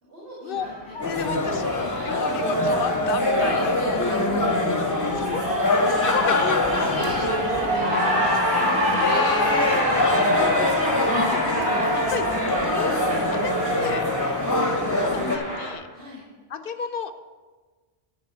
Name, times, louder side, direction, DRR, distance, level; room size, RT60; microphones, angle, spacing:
voice 1, 0.0-2.3 3.3-4.4 5.3-5.7 6.8-9.5 15.9-16.2, equal, 60° right, -7 dB, 2.8 m, -39 dB
Cheering, 0.6-15.7, equal, 90° right, 3.7 m, -27 dB
voice 2, 0.9-4.2 5.1-8.4 8.9-9.8 11.0-12.9 13.3-14.0 15.0-15.9 16.5-17.1, left 7 dB, 60° left, 9 dB, 0.8 m, -33 dB
sound 1, 1.0-15.4, left 2 dB, 20° left, 0.8 m, -24 dB
10.5 x 4.8 x 7.9 m, 1.4 s
omnidirectional pair, 1.1 m